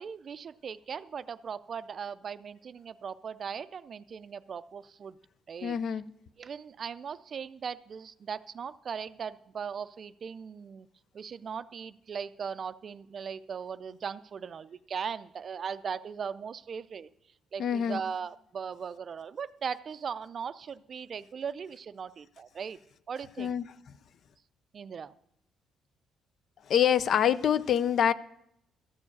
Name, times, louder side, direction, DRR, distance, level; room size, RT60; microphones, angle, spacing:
voice 1, 0.0-5.2 5.5-5.8 6.4-10.9 11.1-17.1 17.5-22.8 23.1-23.6 24.7-25.2, right 6 dB, 50° right, 0.4 m, -38 dB
voice 2, 5.6-6.0 17.6-18.0 23.4-23.6 26.7-28.1, left 9 dB, 60° left, 0.4 m, -25 dB
13.5 x 4.5 x 8.5 m
cardioid pair, 90°, 0 cm